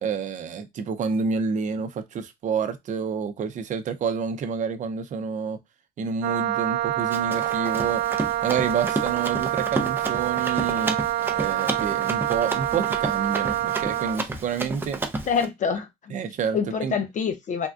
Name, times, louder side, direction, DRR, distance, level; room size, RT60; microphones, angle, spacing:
voice 1, 0.0-5.6 6.0-8.0 8.4-11.0 11.3-15.0 16.1-16.9, right 6 dB, 45° right, 0.6 m, -28 dB
Wind instrument woodwind instrument, 6.2-14.2, right 13 dB, 90° right, 0.5 m, -26 dB
Run, 7.1-15.5, right 2 dB, 15° right, 0.5 m, -32 dB
voice 2, 15.3-16.1 16.5-17.7, left 6 dB, 45° left, 0.6 m, -26 dB
3.5 x 2.2 x 2.4 m
cardioid pair, 110°, 17 cm